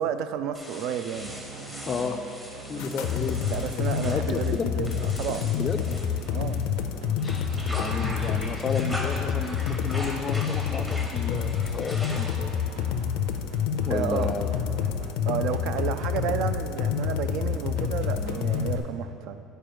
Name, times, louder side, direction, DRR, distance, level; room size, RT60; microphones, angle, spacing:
voice 1, 0.0-1.6 3.5-5.5 6.3-6.6 13.9-14.3 15.3-19.4, right 8 dB, 55° right, 10 dB, 0.3 m, -31 dB
sound 1, 0.5-6.7 7.1-12.7, equal, 5° right, 0.7 m, -40 dB
sound 2, 1.1-18.8, right 4 dB, 85° right, 0.7 m, -44 dB
voice 2, 1.9-2.2 2.6-4.7 5.5-5.8 7.2-12.7 13.9-14.6, left 5 dB, 25° left, 7 dB, 0.3 m, -32 dB
sound 3, 2.8-18.8, left 8 dB, 80° left, 0.5 m, -28 dB
9.1 x 4.6 x 5.0 m, 2.7 s
cardioid pair, 165°, 0 cm